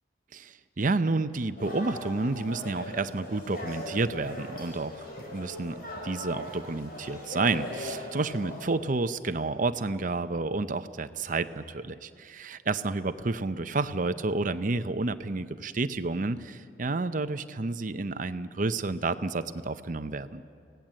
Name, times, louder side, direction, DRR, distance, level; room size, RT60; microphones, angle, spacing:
voice 1, 0.3-20.4, right 3 dB, 45° right, 11 dB, 0.7 m, -30 dB
sound 1, 1.6-8.7, left 1 dB, 50° left, 4.6 m, -40 dB
25.5 x 17.0 x 7.6 m, 2.4 s
head